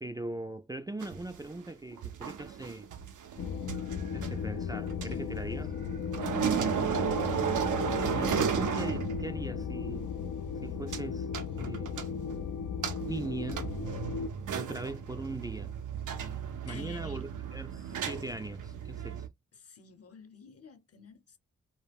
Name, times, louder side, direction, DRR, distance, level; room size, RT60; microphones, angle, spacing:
voice 1, 0.0-2.9 4.1-5.7 8.1-10.1 10.6-11.3 11.6-12.0 13.1-13.7 14.5-15.7 16.6-19.3, right 2 dB, 15° right, 0.3 m, -40 dB
sound 1, 1.0-5.9 6.1-9.5 9.8-9.9 10.9-11.0 11.3-12.4 12.8-19.3, right 7 dB, 85° right, 0.6 m, -34 dB
sound 2, 3.4-14.3, left 6 dB, 80° left, 0.5 m, -36 dB
voice 2, 6.2-6.5 16.5-17.3 19.5-21.4, left 5 dB, 55° left, 0.8 m, -51 dB
2.2 x 2.2 x 3.3 m
cardioid pair, 50°, 30 cm